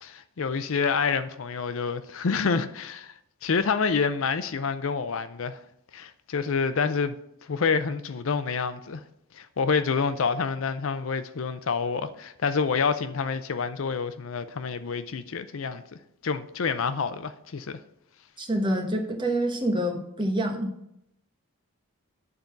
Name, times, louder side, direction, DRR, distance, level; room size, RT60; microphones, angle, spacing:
voice 1, 0.0-3.1 3.4-5.6 5.9-7.2 7.4-9.0 9.3-15.8 16.2-17.8, left 5 dB, 65° left, 0.5 m, -27 dB
voice 2, 18.4-20.7, right 1 dB, 20° right, 1.1 m, -27 dB
9.5 x 3.9 x 7.0 m
head